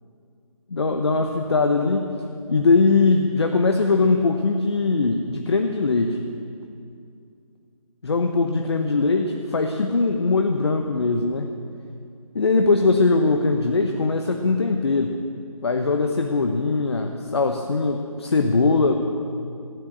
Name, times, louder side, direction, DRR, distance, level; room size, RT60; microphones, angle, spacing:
voice 1, 0.7-2.0 2.5-6.2 8.0-11.5 12.3-15.1 15.6-19.0, left 3 dB, 45° left, 5 dB, 0.9 m, -21 dB
16.0 x 9.9 x 8.6 m, 2.4 s
figure-of-eight pair, 160°, 18 cm